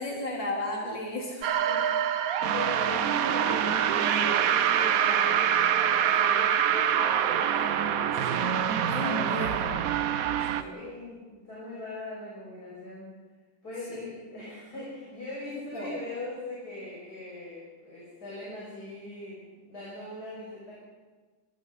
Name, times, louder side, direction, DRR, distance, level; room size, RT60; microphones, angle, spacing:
voice 1, 0.0-1.5 8.3-8.5 8.9-9.7 10.6-10.7 15.7-15.9, left 1 dB, 75° left, -2 dB, 4.3 m, -34 dB
sound 1, 1.4-10.6, right 9 dB, 60° right, 1.0 m, -25 dB
voice 2, 1.6-5.5 5.9-8.4 9.1-9.8 10.6-13.1 13.6-20.7, left 2 dB, 55° left, -7 dB, 7.2 m, -40 dB
27.5 x 18.0 x 5.6 m, 1.3 s
omnidirectional pair, 2.0 m